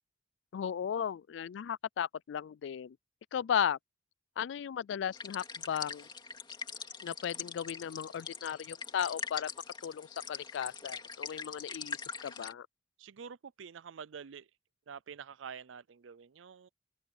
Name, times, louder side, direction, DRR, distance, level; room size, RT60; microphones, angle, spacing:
voice 1, 0.5-3.0 3.3-3.8 4.4-6.1 7.0-9.5 9.8-12.7, left 8 dB, 75° left, 0.3 m, -35 dB
sound 1, 5.1-12.5, left 5 dB, 25° left, 2.5 m, -43 dB
voice 2, 13.0-14.5 14.9-16.7, right 7 dB, 90° right, 0.5 m, -47 dB
open air
head